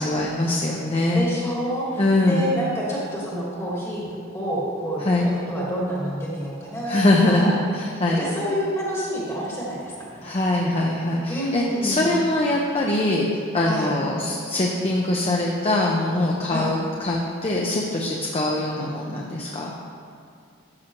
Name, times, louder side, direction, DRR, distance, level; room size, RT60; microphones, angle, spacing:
voice 1, 0.0-1.2 2.0-2.5 5.0-5.3 6.9-8.2 10.2-13.3 13.5-19.7, left 1 dB, 30° left, -2 dB, 0.6 m, -22 dB
voice 2, 1.1-7.0 7.3-7.5 8.2-10.4 11.3-12.2 13.6-13.9 16.5-16.7, equal, 15° left, -5 dB, 1.5 m, -28 dB
12.5 x 6.1 x 3.0 m, 2.3 s
head